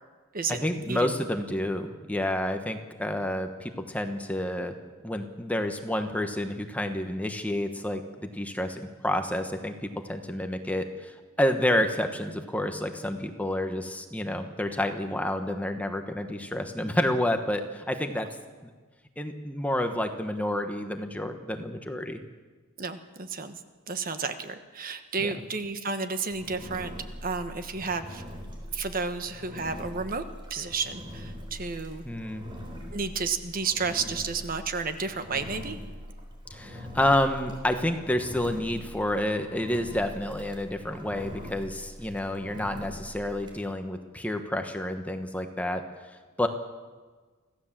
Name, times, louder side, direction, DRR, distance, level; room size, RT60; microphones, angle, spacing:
voice 1, 0.5-4.7 5.0-9.7 10.1-18.3 18.6-18.7 19.2-22.2 25.2-25.3 32.0-32.4 36.5-45.8 46.4-46.5, left 1 dB, 5° left, 6 dB, 1.3 m, -29 dB
voice 2, 22.8-23.6 23.9-26.9 27.2-28.2 28.7-30.2 30.5-32.0 32.9-35.8, right 4 dB, 45° right, 9 dB, 1.3 m, -31 dB
Engine, 26.3-43.6, equal, 25° right, 3.9 m, -42 dB
25.5 x 16.0 x 7.5 m, 1.4 s
head